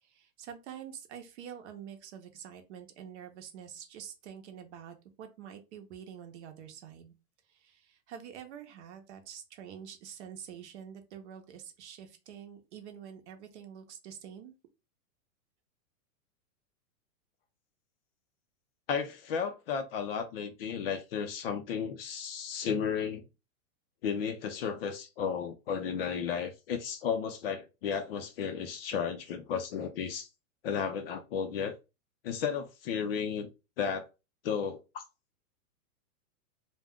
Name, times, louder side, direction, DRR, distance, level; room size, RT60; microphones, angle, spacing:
voice 1, 0.0-7.1 7.5-14.5, right 8 dB, 50° right, 0.8 m, -47 dB
voice 2, 18.9-23.3 24.0-30.3 30.6-31.7 32.2-33.5 33.8-34.1 34.4-34.8, left 7 dB, 45° left, 0.5 m, -33 dB
2.4 x 2.2 x 3.6 m
supercardioid pair, 150°, 44 cm